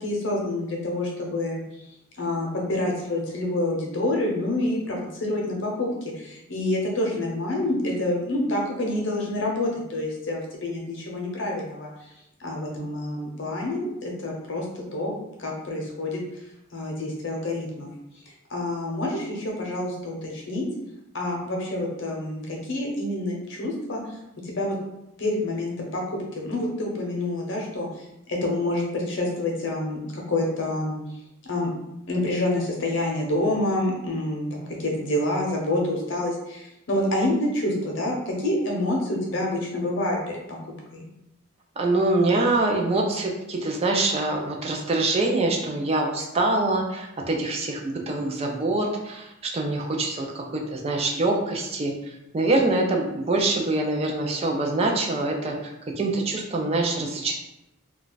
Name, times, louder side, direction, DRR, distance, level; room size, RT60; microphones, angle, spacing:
voice 1, 0.0-1.6 2.2-5.9 6.1-11.9 12.4-14.6 14.9-15.1 15.4-16.2 16.7-17.9 18.5-20.7 21.1-24.0 24.4-24.8 25.2-26.0 26.3-27.9 28.3-30.9 31.4-31.7 32.1-40.2 40.9-41.0, left 1 dB, 60° left, -1 dB, 0.7 m, -27 dB
voice 2, 41.8-57.3, right 2 dB, 30° right, 0 dB, 0.3 m, -25 dB
2.3 x 2.3 x 3.9 m, 0.88 s
head